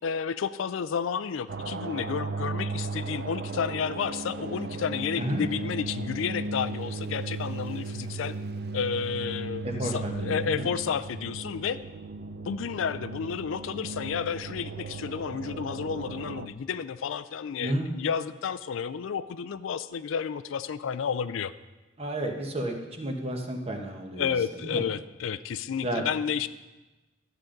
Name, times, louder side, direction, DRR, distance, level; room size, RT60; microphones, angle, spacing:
voice 1, 0.0-8.3 8.7-11.8 12.5-21.5 24.2-26.5, left 7 dB, 75° left, 13 dB, 0.4 m, -31 dB
sound 1, 1.5-16.5, right 3 dB, 50° right, 0.4 m, -36 dB
voice 2, 9.6-10.7 17.6-17.9 22.0-24.3 24.6-24.8 25.8-26.0, right 1 dB, 30° right, 3 dB, 1.1 m, -32 dB
12.0 x 8.6 x 3.8 m, 1.1 s
head